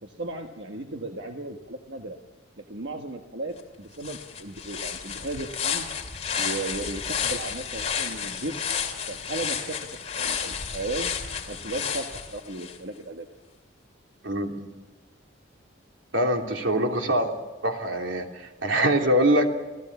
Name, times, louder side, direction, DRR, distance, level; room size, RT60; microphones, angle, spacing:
voice 1, 0.0-2.2 2.6-5.9 6.4-8.7 9.1-9.8 10.2-11.1 11.5-13.3 17.0-17.2, right 2 dB, 65° right, 3 dB, 1.5 m, -35 dB
sound 1, 3.6-3.7 4.0-12.8, left 7 dB, 35° left, 2.7 m, -31 dB
voice 2, 14.2-14.7 16.1-17.3 17.6-19.6, right 1 dB, 85° right, 2 dB, 3.0 m, -24 dB
28.5 x 15.5 x 7.2 m, 1.1 s
head